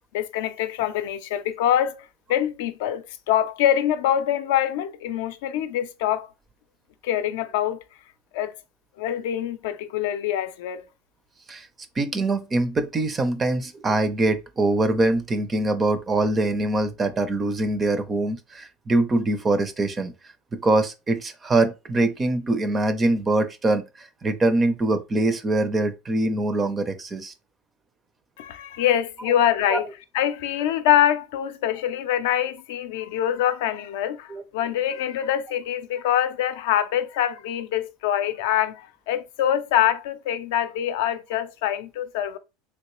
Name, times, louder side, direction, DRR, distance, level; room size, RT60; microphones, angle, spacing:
voice 1, 0.1-6.3 7.0-7.8 8.3-8.5 9.0-10.8 28.4-29.9 30.1-42.4, left 11 dB, 75° left, 0.4 m, -24 dB
voice 2, 12.0-20.1 20.5-23.8 24.2-27.3 29.7-29.8 34.3-34.4, right 2 dB, 15° right, 0.4 m, -23 dB
3.2 x 2.9 x 3.0 m
supercardioid pair, 155°, 0 cm